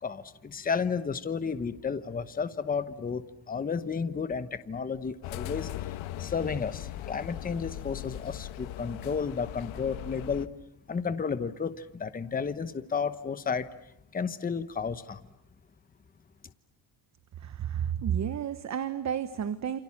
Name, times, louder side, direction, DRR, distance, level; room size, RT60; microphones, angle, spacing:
voice 1, 0.0-5.7 6.2-10.5 10.9-13.7 14.1-15.2, left 5 dB, 20° left, 12 dB, 1.0 m, -32 dB
sound 1, 5.2-10.5, left 13 dB, 90° left, 1.3 m, -39 dB
voice 2, 17.4-19.8, right 9 dB, 35° right, 12 dB, 1.1 m, -31 dB
28.5 x 28.5 x 7.2 m, 0.82 s
cardioid pair, 165°, 46 cm